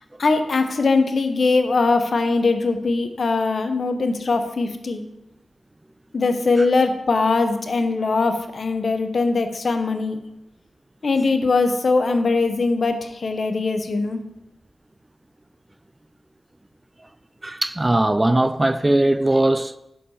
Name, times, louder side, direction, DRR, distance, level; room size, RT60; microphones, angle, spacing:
voice 1, 0.2-5.0 6.1-10.2 11.0-14.2, left 3 dB, 55° left, 0.8 m, -21 dB
voice 2, 17.4-19.8, right 1 dB, 20° right, 0.3 m, -19 dB
6.4 x 5.7 x 5.4 m
cardioid pair, 75°, 0 cm